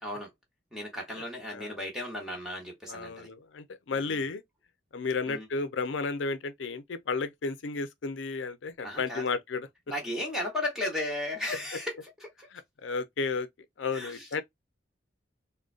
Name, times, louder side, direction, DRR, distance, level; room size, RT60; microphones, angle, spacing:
voice 1, 0.7-3.3 3.9-4.3 5.3-5.5 8.8-9.3 9.9-12.5 13.9-14.4, left 1 dB, 5° right, 1.0 m, -35 dB
voice 2, 2.9-4.4 4.9-9.7 12.5-13.5 13.8-14.4, left 4 dB, 80° left, 0.5 m, -33 dB
3.7 x 2.2 x 2.4 m
head